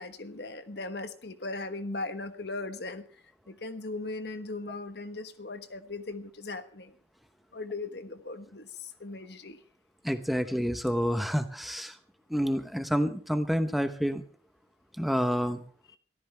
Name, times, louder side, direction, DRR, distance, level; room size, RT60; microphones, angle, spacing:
voice 1, 0.0-3.0 3.5-6.9 7.5-9.6, left 2 dB, 60° left, 10 dB, 1.3 m, -38 dB
voice 2, 10.0-12.0 12.3-14.2 15.0-15.6, equal, ahead, 8 dB, 0.9 m, -28 dB
23.5 x 14.0 x 3.4 m, 0.43 s
head